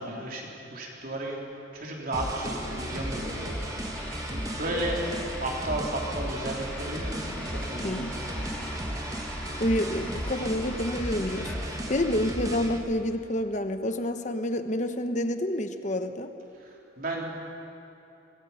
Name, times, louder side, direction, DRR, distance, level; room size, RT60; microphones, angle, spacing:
voice 1, 0.0-1.4 1.7-7.1 7.5-8.6 16.6-17.2, right 1 dB, 45° right, -1 dB, 3.6 m, -34 dB
sound 1, 2.1-12.8, right 1 dB, 15° right, 1.5 m, -35 dB
sound 2, 2.2-12.5, left 1 dB, 5° left, 3.4 m, -42 dB
voice 2, 7.8-8.2 9.6-16.3, left 1 dB, 35° left, 8 dB, 1.1 m, -28 dB
23.5 x 23.5 x 5.8 m, 2.9 s
head